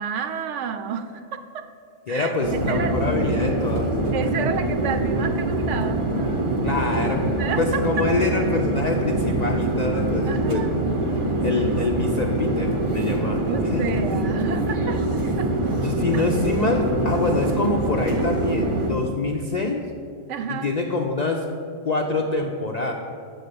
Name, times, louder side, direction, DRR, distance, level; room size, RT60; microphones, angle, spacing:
voice 1, 0.0-1.6 2.1-2.3 2.6-2.9 4.1-6.0 7.4-8.0 10.3-10.7 13.4-15.0 15.4-15.5 16.1-16.2 20.3-20.7, right 6 dB, 75° right, 8 dB, 0.9 m, -30 dB
voice 2, 2.1-3.9 6.6-7.3 7.5-10.6 11.4-13.8 15.7-19.8 20.5-21.4 21.8-22.9, left 3 dB, 60° left, 1 dB, 0.4 m, -25 dB
sound 1, 2.4-18.9, right 1 dB, 35° right, 0.5 m, -24 dB
7.6 x 4.1 x 6.8 m, 2.3 s
omnidirectional pair, 1.3 m